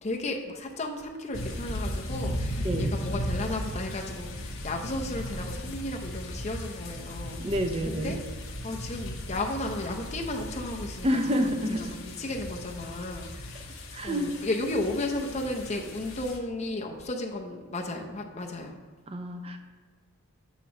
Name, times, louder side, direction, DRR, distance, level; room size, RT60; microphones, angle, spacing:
voice 1, 0.0-7.4 7.8-8.2 8.6-11.1 11.4-18.8, left 2 dB, 30° left, 2 dB, 0.7 m, -34 dB
sound 1, 1.3-16.4, left 1 dB, 65° left, 0.9 m, -36 dB
voice 2, 7.4-8.2 11.0-12.0 13.9-14.3 19.1-19.6, equal, 25° right, 6 dB, 0.5 m, -28 dB
8.2 x 3.0 x 5.9 m, 1.5 s
head